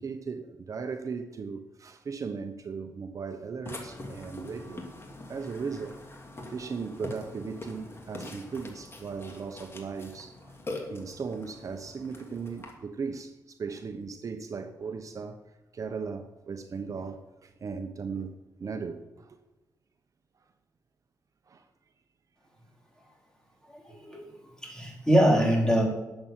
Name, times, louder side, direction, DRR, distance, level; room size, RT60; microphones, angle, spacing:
voice 1, 0.0-4.9 5.3-6.0 6.5-10.6 10.9-15.4 15.7-19.4 21.5-21.7, right 5 dB, 50° right, 1.0 m, -37 dB
Burping eructation, 3.7-12.7, left 2 dB, 35° left, 2.7 m, -43 dB
voice 2, 23.7-24.2 24.6-25.8, equal, 10° left, 4.5 m, -23 dB
11.5 x 7.8 x 7.4 m
cardioid pair, 80°, 7 cm